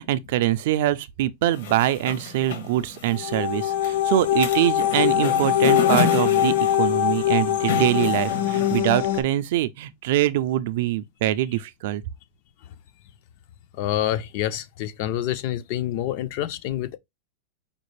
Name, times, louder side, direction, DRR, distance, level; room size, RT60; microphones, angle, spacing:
voice 1, 0.0-12.0, right 13 dB, 50° right, 0.3 m, -24 dB
sound 1, 1.5-8.8, left 5 dB, 65° left, 1.2 m, -31 dB
sound 2, 3.1-9.2, left 12 dB, 85° left, 0.9 m, -22 dB
voice 2, 13.8-17.0, left 12 dB, 40° left, 0.4 m, -27 dB
5.0 x 2.4 x 3.1 m
supercardioid pair, 180°, 0 cm